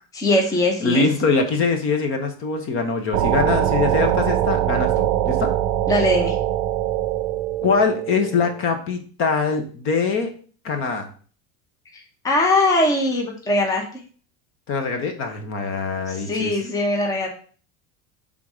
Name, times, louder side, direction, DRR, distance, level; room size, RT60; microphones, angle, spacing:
voice 1, 0.1-1.1 5.9-6.4 12.2-13.8 16.1-17.3, left 1 dB, 10° left, 1 dB, 0.8 m, -20 dB
voice 2, 0.8-5.5 7.6-10.3 10.6-11.1 14.7-16.6, left 4 dB, 35° left, 5 dB, 0.9 m, -23 dB
sound 1, 3.1-8.6, right 12 dB, 80° right, 0.6 m, -22 dB
5.8 x 3.7 x 4.9 m, 0.42 s
cardioid pair, 165°, 36 cm